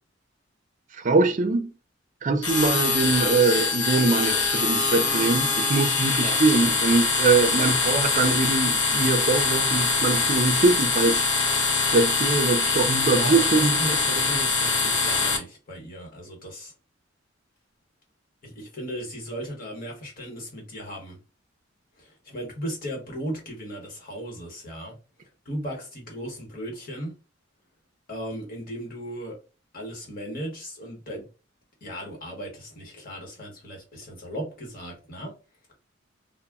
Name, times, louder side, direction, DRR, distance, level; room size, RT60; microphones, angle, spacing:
voice 1, 1.0-1.7 2.2-11.3 11.9-13.8 14.2-14.3, right 3 dB, 40° right, 0.4 m, -23 dB
sound 1, 2.4-15.4, left 4 dB, 65° left, 0.7 m, -23 dB
voice 2, 6.2-6.7 13.2-16.7 18.4-21.2 22.0-25.0 25.4-27.1 28.1-29.4 29.7-31.3 31.8-35.3, equal, 50° left, 1.1 m, -36 dB
2.1 x 2.0 x 3.4 m
head